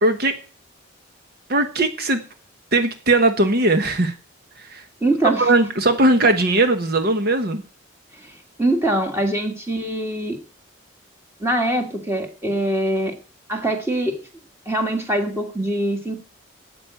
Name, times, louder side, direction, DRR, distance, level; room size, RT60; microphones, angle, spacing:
voice 1, 0.0-0.4 1.5-2.2 2.7-4.1 4.6-4.8 5.4-7.6, right 2 dB, 50° right, 8 dB, 1.1 m, -19 dB
voice 2, 5.0-5.5 8.1-10.4 11.4-13.1 13.5-14.2 14.7-16.2, right 1 dB, 10° right, 3 dB, 1.8 m, -23 dB
9.3 x 7.9 x 9.1 m, 0.38 s
head